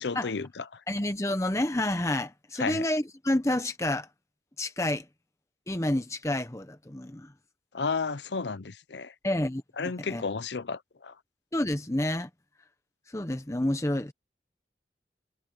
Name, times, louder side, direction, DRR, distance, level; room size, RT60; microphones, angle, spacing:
voice 1, 0.0-0.8 2.6-2.9 7.7-9.1 9.8-11.1, left 4 dB, 85° left, 0.7 m, -32 dB
voice 2, 0.9-4.1 4.6-5.0 5.7-7.3 9.2-10.2 11.5-12.3 13.1-14.1, left 1 dB, 15° left, 0.9 m, -29 dB
head